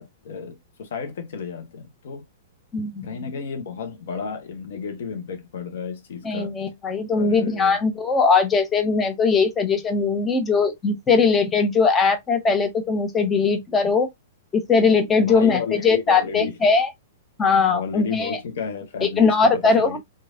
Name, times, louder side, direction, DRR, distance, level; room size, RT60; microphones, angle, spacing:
voice 1, 0.0-2.2 3.0-6.6 7.1-7.8 15.2-16.6 17.7-20.0, left 5 dB, 60° left, 0.7 m, -32 dB
voice 2, 2.7-3.0 6.2-14.1 14.5-16.9 17.4-18.4 19.2-20.0, left 4 dB, 20° left, 0.7 m, -20 dB
3.1 x 2.6 x 2.4 m
figure-of-eight pair, 105°, 0 cm